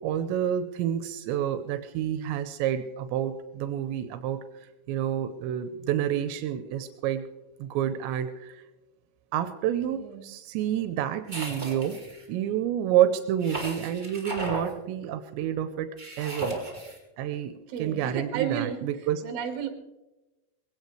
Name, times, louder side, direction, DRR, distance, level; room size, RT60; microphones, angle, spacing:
voice 1, 0.0-4.4 4.9-7.3 7.6-8.6 9.3-12.0 12.3-15.9 16.2-16.6 17.2-19.2, right 10 dB, 85° right, 8 dB, 3.0 m, -29 dB
voice 2, 9.9-10.3 17.7-18.9 19.2-19.7, right 8 dB, 60° right, 5 dB, 3.3 m, -32 dB
sound 1, 11.3-12.2 13.4-14.7 16.0-17.0, right 2 dB, 15° right, 2.5 m, -35 dB
20.5 x 17.5 x 3.2 m, 1.0 s
omnidirectional pair, 5.1 m